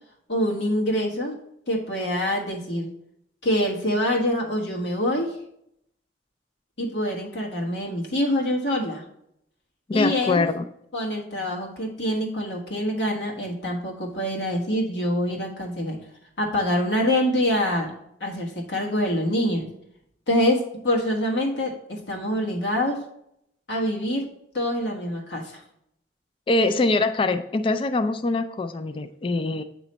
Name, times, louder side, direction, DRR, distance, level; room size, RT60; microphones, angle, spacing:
voice 1, 0.3-1.4 1.7-2.9 3.4-5.4 6.8-9.0 9.9-10.5 10.9-16.0 16.4-17.9 18.2-19.7 20.3-23.0 23.7-24.2 24.5-25.6, equal, 80° left, 0 dB, 1.5 m, -25 dB
voice 2, 9.9-10.7 26.5-29.6, left 2 dB, 30° left, 9 dB, 0.3 m, -23 dB
8.8 x 3.1 x 4.2 m, 0.74 s
head